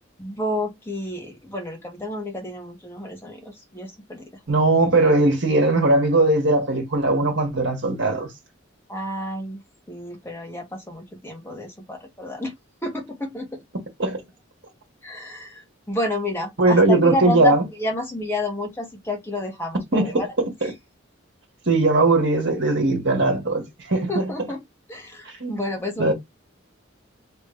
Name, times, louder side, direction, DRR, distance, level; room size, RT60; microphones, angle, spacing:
voice 1, 0.2-4.3 8.9-9.6 9.9-12.5 12.8-13.5 15.0-20.3 20.6-20.7 24.1-24.6 24.9-26.1, left 1 dB, 10° left, 1.3 m, -30 dB
voice 2, 4.5-8.3 14.0-14.2 16.6-17.6 19.9-20.3 20.6-20.7 21.7-23.6 23.9-24.3 25.4-25.6 26.0-26.1, right 2 dB, 60° right, 1.6 m, -19 dB
3.3 x 3.1 x 3.1 m
head